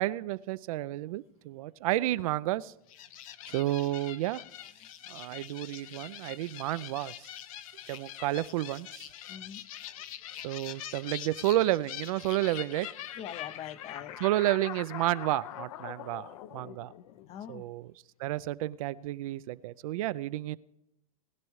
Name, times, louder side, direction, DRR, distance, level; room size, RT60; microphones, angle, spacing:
voice 1, 0.0-2.7 3.5-4.4 5.1-7.3 7.9-9.1 10.4-12.9 14.2-16.9 17.5-17.9 18.2-20.6, right 15 dB, 65° right, 16 dB, 0.4 m, -31 dB
sound 1, 2.9-17.5, left 12 dB, 65° left, 0.7 m, -44 dB
voice 2, 9.3-9.6 10.4-10.5 13.2-14.2 17.3-17.7, left 10 dB, 35° left, 15 dB, 0.6 m, -43 dB
19.5 x 10.5 x 3.1 m, 0.85 s
hypercardioid pair, 115°, 19 cm